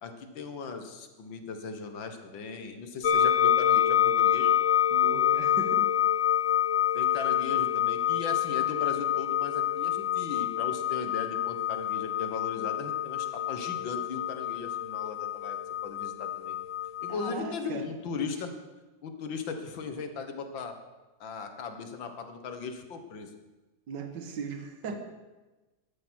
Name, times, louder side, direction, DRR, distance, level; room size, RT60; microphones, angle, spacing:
voice 1, 0.0-4.5 6.9-16.6 17.0-18.5 19.0-20.8 21.2-23.3 24.9-25.0, left 5 dB, 85° left, 7 dB, 2.1 m, -38 dB
sound 1, 3.0-17.3, left 11 dB, 50° left, 1.1 m, -27 dB
voice 2, 4.9-5.9 17.1-17.9 23.9-25.0, right 5 dB, 70° right, 6 dB, 2.0 m, -38 dB
12.5 x 12.0 x 6.3 m, 1.1 s
omnidirectional pair, 2.0 m